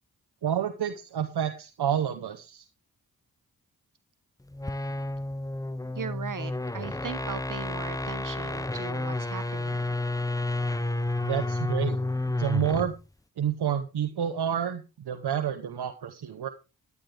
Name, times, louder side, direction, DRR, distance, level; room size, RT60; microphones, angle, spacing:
voice 1, 0.4-2.7 11.2-12.0 12.4-12.9 13.4-16.5, right 9 dB, 80° right, 7 dB, 1.0 m, -29 dB
sound 1, 4.5-13.0, left 2 dB, 10° left, 0.7 m, -31 dB
voice 2, 5.9-9.8, right 6 dB, 55° right, 13 dB, 1.0 m, -38 dB
13.0 x 9.7 x 3.4 m, 0.29 s
cardioid pair, 40°, 38 cm